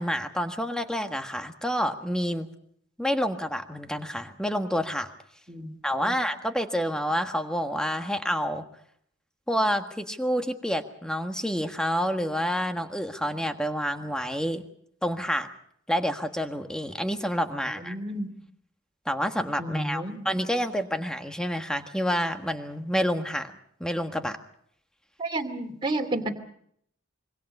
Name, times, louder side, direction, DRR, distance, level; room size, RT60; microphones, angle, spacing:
voice 1, 0.0-2.5 3.0-5.1 5.8-8.6 9.5-14.6 15.0-15.5 15.9-18.0 19.0-23.5 23.8-24.4, equal, 5° left, 6 dB, 1.5 m, -28 dB
voice 2, 17.8-18.3 19.6-20.2 25.2-26.3, right 1 dB, 25° right, 2 dB, 2.7 m, -31 dB
25.5 x 23.5 x 5.5 m, 0.67 s
head